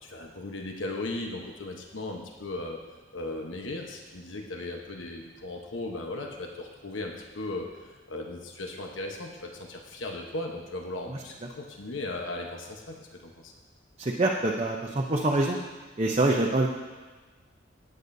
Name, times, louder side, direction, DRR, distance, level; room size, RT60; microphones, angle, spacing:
voice 1, 0.0-2.8 3.1-13.5, left 2 dB, 90° left, 1 dB, 1.1 m, -37 dB
voice 2, 14.0-15.6 16.0-16.7, right 2 dB, 35° right, -1 dB, 0.7 m, -25 dB
19.0 x 7.9 x 2.7 m, 1.3 s
head